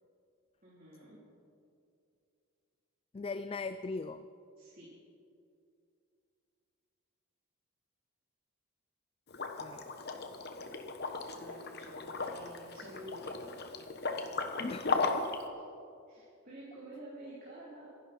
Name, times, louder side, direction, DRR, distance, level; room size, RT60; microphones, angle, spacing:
voice 1, 0.6-1.2 4.6-4.9 11.3-13.5 16.1-17.9, right 1 dB, 40° right, -7 dB, 3.3 m, -50 dB
voice 2, 3.1-4.3 9.6-9.9 14.6-15.4, left 3 dB, 25° left, 12 dB, 0.3 m, -40 dB
Liquid, 9.3-15.4, left 3 dB, 50° left, 1.1 m, -36 dB
25.0 x 11.0 x 4.3 m, 2.5 s
head